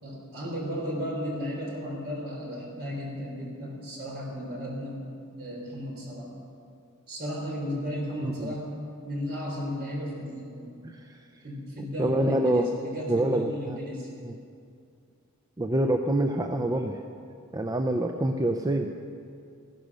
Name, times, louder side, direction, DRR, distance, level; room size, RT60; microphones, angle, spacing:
voice 1, 0.0-5.0 5.4-6.3 7.1-10.8 11.4-14.1, equal, 45° right, -2 dB, 4.0 m, -34 dB
voice 2, 8.2-8.5 10.8-11.2 12.0-12.7 13.1-13.8 14.2-14.4 15.6-17.0 17.5-18.9, right 1 dB, 15° right, 4 dB, 0.5 m, -26 dB
15.0 x 11.5 x 6.3 m, 2.4 s
head